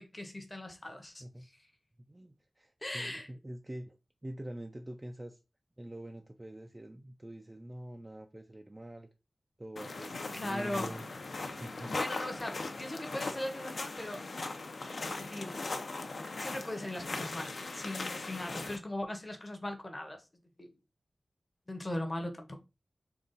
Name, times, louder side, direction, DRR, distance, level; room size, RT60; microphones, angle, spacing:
voice 1, 0.0-1.5 2.8-3.3 10.3-10.9 11.9-14.2 15.0-15.5 16.4-20.2 20.6-20.7 21.7-22.6, left 1 dB, 25° left, 0.8 m, -39 dB
voice 2, 2.1-4.0 4.2-5.4 5.8-9.1 9.6-11.1 11.6-11.9, right 1 dB, 20° right, 0.3 m, -45 dB
sound 1, 9.8-18.8, left 3 dB, 65° left, 0.6 m, -39 dB
3.8 x 2.3 x 3.8 m
wide cardioid pair, 105°, 0 cm